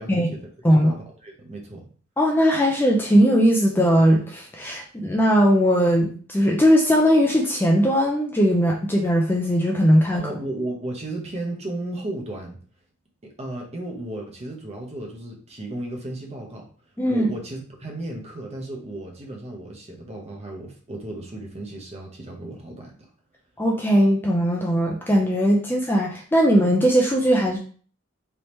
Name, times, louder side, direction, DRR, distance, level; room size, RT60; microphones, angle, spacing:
voice 1, 0.0-1.9 10.1-12.6 13.2-16.7 17.1-22.9, right 1 dB, 30° right, 1 dB, 0.8 m, -34 dB
voice 2, 2.2-10.3 17.0-17.3 23.6-27.6, equal, 10° left, -1 dB, 0.4 m, -19 dB
3.4 x 2.8 x 3.0 m, 0.43 s
head